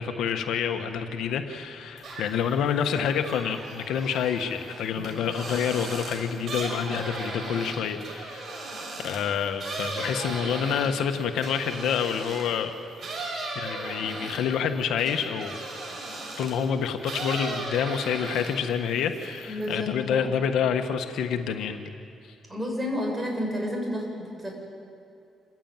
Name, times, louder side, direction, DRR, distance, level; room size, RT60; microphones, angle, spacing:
voice 1, 0.0-8.5 9.0-12.7 13.5-15.6 16.4-21.8 22.3-22.4, left 7 dB, 80° left, 7 dB, 1.4 m, -28 dB
sound 1, 2.0-2.5 2.9-12.6 13.0-16.6 17.0-18.7 19.0-19.7, right 2 dB, 50° right, 7.2 m, -36 dB
voice 2, 19.5-20.3 22.5-24.5, equal, 15° right, 0 dB, 7.2 m, -31 dB
28.0 x 15.5 x 9.1 m, 2.6 s
cardioid pair, 90°, 0 cm